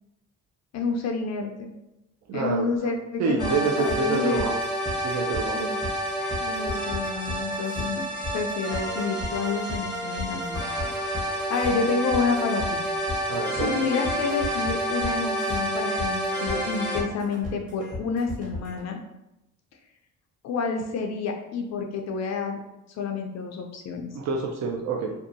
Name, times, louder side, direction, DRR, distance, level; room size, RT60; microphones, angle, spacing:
voice 1, 0.7-1.7 2.3-4.5 5.5-5.8 6.4-10.6 11.5-12.8 13.5-19.0 20.4-22.6 22.9-24.1, left 4 dB, 60° left, 3 dB, 0.4 m, -29 dB
voice 2, 2.3-2.9 3.2-4.6 5.0-5.7 13.3-13.9 24.1-25.1, right 4 dB, 65° right, 0 dB, 0.5 m, -27 dB
sound 1, 3.4-17.0, equal, 15° right, 0.8 m, -29 dB
sound 2, 3.4-18.8, left 2 dB, 30° right, 1.0 m, -36 dB
2.7 x 2.2 x 2.6 m, 0.89 s
cardioid pair, 90°, 30 cm